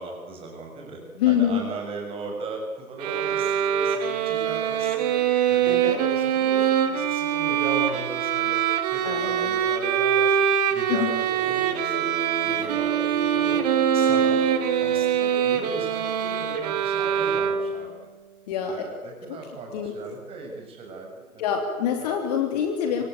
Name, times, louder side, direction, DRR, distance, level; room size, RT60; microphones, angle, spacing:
voice 1, 0.0-1.0 1.2-5.2 5.5-8.6 8.9-12.1 12.4-13.6 13.9-14.5 14.8-17.9 18.6-21.4 22.0-22.1, right 3 dB, 15° right, 1 dB, 6.4 m, -37 dB
voice 2, 1.2-1.6 5.6-6.0 9.0-9.5 10.9-11.1 18.5-18.8 19.3-19.4 19.7-19.9 21.4-23.0, left 9 dB, 30° left, 4 dB, 3.0 m, -25 dB
sound 1, 3.0-17.9, right 9 dB, 30° right, 2.1 m, -24 dB
sound 2, 11.4-15.9, equal, 80° right, 2.6 m, -34 dB
25.5 x 24.0 x 9.2 m, 1.2 s
figure-of-eight pair, 145°, 43 cm